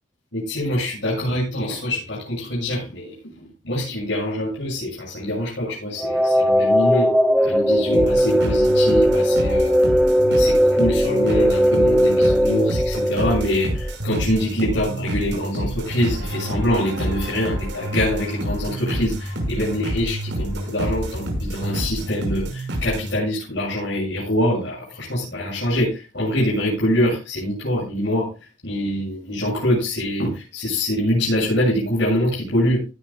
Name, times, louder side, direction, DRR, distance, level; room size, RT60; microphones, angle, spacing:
voice 1, 0.3-3.1 3.6-7.1 7.4-9.7 10.3-28.3 28.6-32.8, left 1 dB, 70° left, -7 dB, 7.3 m, -24 dB
sound 1, 6.0-14.0, equal, ahead, 0.6 m, -18 dB
sound 2, 7.9-23.2, equal, 70° right, 6.2 m, -28 dB
18.0 x 11.5 x 2.4 m, 0.29 s
head